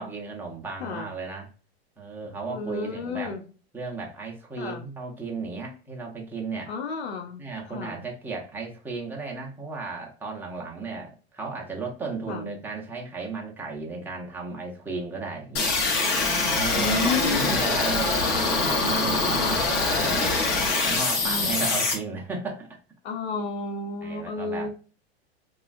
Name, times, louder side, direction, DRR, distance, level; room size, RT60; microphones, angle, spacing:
voice 1, 0.0-1.5 2.0-3.3 3.7-6.7 7.4-15.7 16.4-20.4 20.9-22.8 24.0-24.7, right 4 dB, 5° right, 0.5 m, -34 dB
voice 2, 2.5-3.4 4.6-4.8 6.7-8.0 12.3-12.5 16.7-17.6 19.4-19.6 21.2-21.7 23.0-24.7, left 4 dB, 90° left, 0.8 m, -32 dB
sound 1, 15.6-21.9, left 3 dB, 35° left, 0.8 m, -24 dB
3.0 x 2.3 x 2.4 m
supercardioid pair, 135°, 31 cm